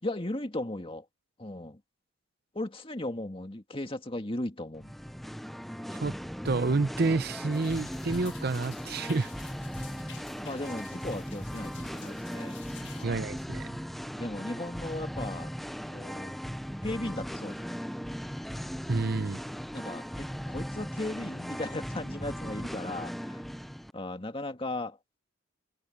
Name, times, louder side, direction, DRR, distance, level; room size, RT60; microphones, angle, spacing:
voice 1, 0.0-1.1 1.4-1.8 2.5-4.9 10.4-12.6 12.9-13.3 14.2-15.5 15.9-16.3 16.8-17.7 19.7-23.4 23.9-25.0, left 1 dB, 30° left, 2.1 m, -36 dB
Singing, 4.7-23.9, equal, ahead, 0.5 m, -38 dB
voice 2, 6.4-9.3 13.0-13.8 18.9-19.4, right 3 dB, 55° right, 0.6 m, -29 dB
sound 1, 7.5-13.1, left 10 dB, 70° left, 1.7 m, -51 dB
head